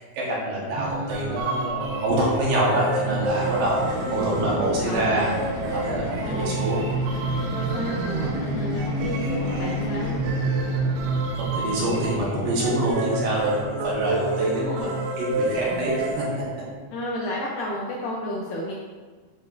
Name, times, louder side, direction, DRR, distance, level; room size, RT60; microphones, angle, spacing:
voice 1, 0.0-5.3 5.7-6.9 11.4-16.3, right 1 dB, 65° right, -5 dB, 2.8 m, -26 dB
sound 1, 0.8-16.8, right 2 dB, 85° right, 2.8 m, -28 dB
sound 2, 2.9-11.7, left 2 dB, 50° left, 1.6 m, -34 dB
voice 2, 4.0-5.3 6.2-6.5 7.5-10.2 14.6-14.9 16.9-18.7, equal, 75° left, -4 dB, 2.1 m, -32 dB
10.0 x 4.5 x 2.6 m, 1.4 s
omnidirectional pair, 4.6 m